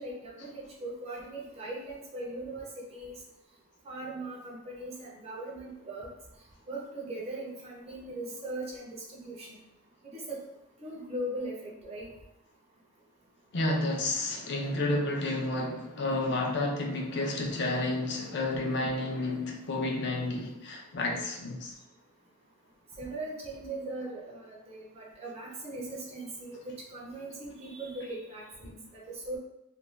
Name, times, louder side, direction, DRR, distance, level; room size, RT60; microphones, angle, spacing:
voice 1, 0.0-3.2 3.8-6.1 6.7-9.6 10.1-10.4 10.8-12.1 23.0-29.4, right 1 dB, 30° right, -2 dB, 0.5 m, -39 dB
voice 2, 13.5-21.7, left 2 dB, 60° left, 1 dB, 0.5 m, -31 dB
2.4 x 2.2 x 3.1 m, 0.86 s
head